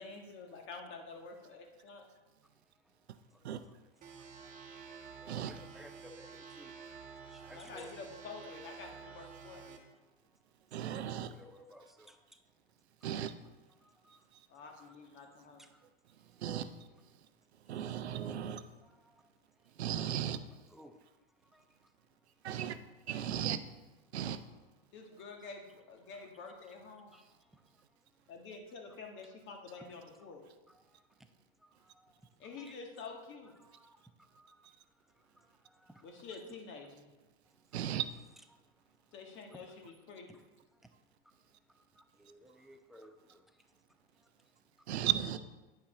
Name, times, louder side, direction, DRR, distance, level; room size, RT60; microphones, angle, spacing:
voice 1, 0.0-2.0 7.5-9.8 14.5-15.6 24.9-27.1 28.3-30.4 32.4-33.6 36.0-37.0 39.1-40.4, left 4 dB, 35° left, 1.5 m, -48 dB
voice 2, 2.4-7.9 8.8-8.9 9.9-12.9 13.7-16.4 17.1-18.0 18.3-19.8 20.3-22.6 23.2-23.5 24.1-24.2 24.8-25.5 26.0-26.3 27.1-28.3 29.2-29.3 29.7-29.9 30.7-32.8 33.4-36.4 37.4-38.0 38.5-39.8 40.1-40.4 40.7-44.9, equal, ahead, 0.3 m, -62 dB
sound 1, 4.0-9.8, right 6 dB, 25° right, 1.3 m, -50 dB
voice 3, 10.7-11.3 13.0-13.3 16.4-16.8 17.7-18.6 19.8-20.4 22.4-22.8 23.1-23.6 24.1-24.4 37.7-38.1 44.9-45.4, right 10 dB, 85° right, 0.7 m, -35 dB
9.8 x 5.7 x 3.8 m
hypercardioid pair, 115°, 31 cm